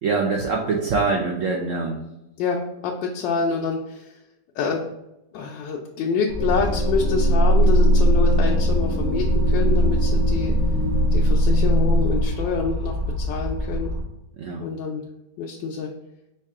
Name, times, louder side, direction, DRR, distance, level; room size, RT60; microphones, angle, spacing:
voice 1, 0.0-2.0 14.4-14.6, right 4 dB, 75° right, -1 dB, 0.7 m, -24 dB
voice 2, 2.4-4.1 4.5-4.9 5.3-10.5 11.1-13.9 14.6-15.0 15.4-15.9, left 5 dB, 85° left, -1 dB, 1.3 m, -27 dB
sound 1, 6.3-14.0, left 1 dB, 60° right, 1.3 m, -28 dB
sound 2, 6.4-12.2, equal, 70° left, 1.0 m, -19 dB
5.6 x 2.4 x 3.5 m, 0.89 s
omnidirectional pair, 1.9 m